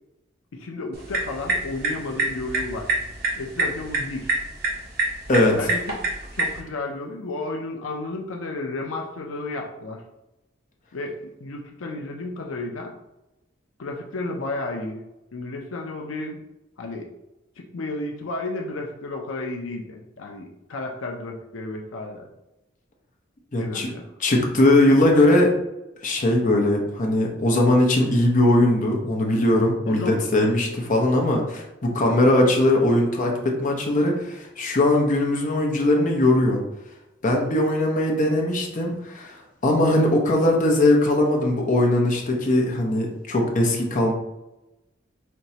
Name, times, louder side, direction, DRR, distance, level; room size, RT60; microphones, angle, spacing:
voice 1, 0.5-2.9 3.4-4.3 5.5-6.0 6.3-10.0 10.9-12.9 13.8-15.0 15.3-16.4 16.8-17.1 17.6-22.3 23.6-24.1 29.9-30.2, left 2 dB, 85° left, 2 dB, 0.5 m, -32 dB
sound 1, 0.9-6.6, right 2 dB, 50° right, 0.9 m, -27 dB
voice 2, 23.5-23.9 24.2-25.5 26.0-36.6 37.2-44.1, left 1 dB, 40° left, 0 dB, 0.7 m, -20 dB
4.4 x 3.0 x 2.8 m, 0.94 s
head